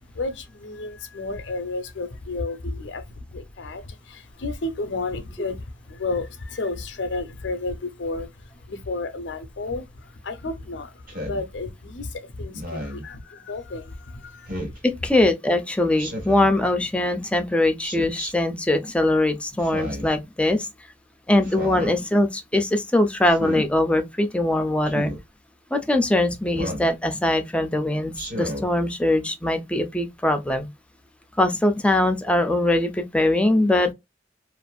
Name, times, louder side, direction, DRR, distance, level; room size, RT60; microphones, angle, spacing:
voice 1, 0.1-8.3 8.7-14.6, left 3 dB, 80° left, 0.6 m, -32 dB
Speech synthesizer, 11.1-11.4 12.5-13.0 14.5-14.8 16.0-16.5 17.8-18.3 19.6-20.1 21.4-21.9 23.3-23.7 24.9-25.2 26.5-26.9 28.1-28.7, equal, 50° right, 1.4 m, -32 dB
voice 2, 14.8-20.7 21.3-25.1 25.7-30.7 31.4-33.9, left 1 dB, 5° left, 0.4 m, -22 dB
2.5 x 2.4 x 2.2 m
head